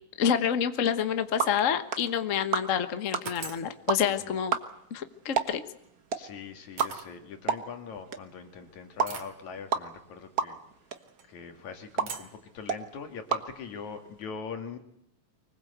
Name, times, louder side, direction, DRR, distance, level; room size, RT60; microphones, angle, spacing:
voice 1, 0.2-4.6 4.9-5.6, left 8 dB, 55° left, 10 dB, 0.8 m, -28 dB
sound 1, 0.9-14.2, right 6 dB, 50° right, 1.1 m, -35 dB
sound 2, 2.1-2.4 3.3-3.7 5.7-5.9 6.8-7.1 8.0-8.1 9.1-9.4 11.0-11.3 12.1-12.4, right 6 dB, 65° right, 3.4 m, -41 dB
voice 2, 6.2-10.6 11.3-14.8, left 6 dB, 70° left, 6 dB, 3.5 m, -42 dB
25.0 x 20.5 x 8.1 m, 0.75 s
omnidirectional pair, 3.4 m